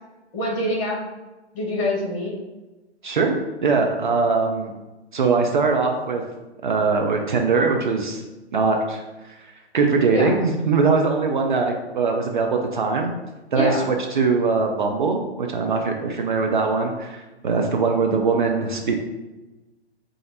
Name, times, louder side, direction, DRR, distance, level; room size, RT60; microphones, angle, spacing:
voice 1, 0.3-1.0 1.5-2.3 10.1-10.3 13.5-13.9, left 1 dB, 30° left, -2 dB, 1.1 m, -25 dB
voice 2, 3.6-4.7 5.1-6.2 6.6-8.2 8.5-9.4 9.7-13.1 13.5-19.0, right 4 dB, 45° right, 3 dB, 0.4 m, -21 dB
4.9 x 2.5 x 2.8 m, 1.1 s
figure-of-eight pair, 125°, 34 cm